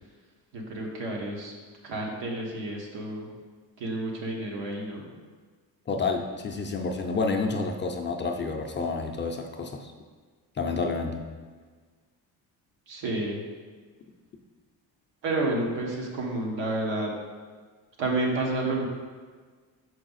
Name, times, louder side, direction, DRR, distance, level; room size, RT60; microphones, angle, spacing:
voice 1, 0.5-1.5 1.8-3.3 3.8-5.1 12.9-13.4 15.2-17.1 18.0-18.9, right 2 dB, 90° right, -1 dB, 1.5 m, -30 dB
voice 2, 5.9-9.9 10.6-11.2, left 4 dB, 25° left, 3 dB, 0.4 m, -29 dB
6.1 x 4.8 x 4.0 m, 1.5 s
cardioid pair, 130°, 44 cm